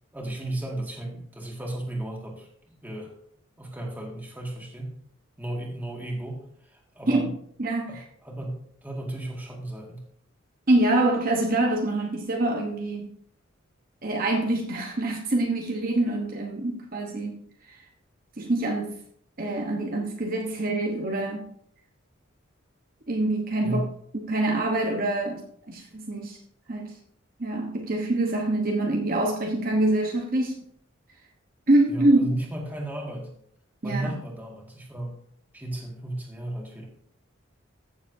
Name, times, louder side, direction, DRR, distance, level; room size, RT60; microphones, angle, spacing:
voice 1, 0.1-2.5 2.8-3.1 3.6-4.9 5.4-7.3 7.9-10.0 23.6-23.9 31.9-33.3 33.8-35.2 35.5-36.9, right 1 dB, 10° right, 1.9 m, -34 dB
voice 2, 7.6-8.0 10.7-13.1 14.0-17.4 18.4-18.9 19.4-21.5 23.1-23.8 24.3-26.4 26.7-26.9 27.4-30.6 31.7-32.3 33.8-34.2, right 2 dB, 45° right, 1.0 m, -25 dB
14.5 x 7.1 x 2.7 m
head